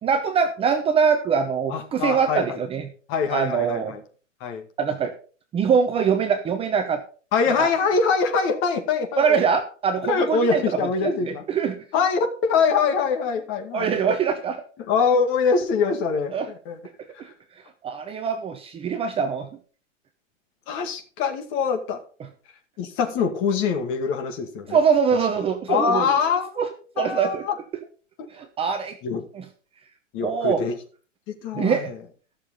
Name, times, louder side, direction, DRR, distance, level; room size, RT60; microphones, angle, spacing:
voice 1, 0.0-2.9 3.3-3.9 4.8-5.1 5.5-7.0 7.6-7.7 9.2-10.6 11.0-11.8 13.7-14.6 16.3-16.5 17.2-17.3 17.8-19.5 24.7-26.1 26.6-26.7 27.0-27.4 28.3-29.0 29.3-29.4 30.2-30.6 31.6-31.9, right 6 dB, 15° right, 6 dB, 0.8 m, -23 dB
voice 2, 1.7-2.6 3.1-4.0 4.4-4.6 7.3-9.3 10.0-11.4 11.9-14.0 14.8-16.8 20.7-22.0 22.8-24.8 25.7-26.5 27.0-27.5 29.0-29.2 30.1-30.8 31.3-32.0, left 5 dB, 30° left, 6 dB, 2.2 m, -24 dB
14.0 x 6.9 x 5.3 m, 0.40 s
hypercardioid pair, 135°, 38 cm